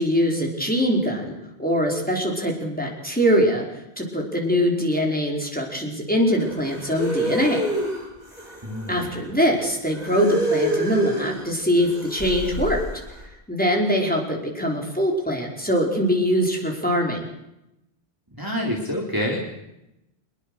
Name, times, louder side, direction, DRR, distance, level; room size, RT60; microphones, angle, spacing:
voice 1, 0.0-1.3 1.6-3.6 4.0-7.7 8.9-12.8 13.5-17.2, equal, 10° left, -1 dB, 5.3 m, -22 dB
sound 1, 6.4-9.1 9.9-11.4 11.8-13.1, right 1 dB, 40° left, 8.0 m, -27 dB
voice 2, 8.6-9.1 18.3-19.4, equal, 20° right, -2 dB, 4.1 m, -27 dB
26.0 x 21.5 x 6.6 m, 0.87 s
omnidirectional pair, 1.1 m